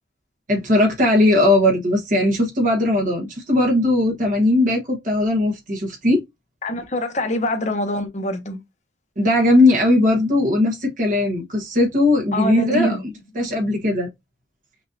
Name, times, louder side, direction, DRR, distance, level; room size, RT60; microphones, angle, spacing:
voice 1, 0.5-6.2 9.2-13.0 13.3-14.1, left 1 dB, 45° right, 1.2 m, -18 dB
voice 2, 6.6-8.6 12.3-13.0, left 1 dB, 40° left, 0.9 m, -24 dB
6.0 x 2.6 x 2.6 m
head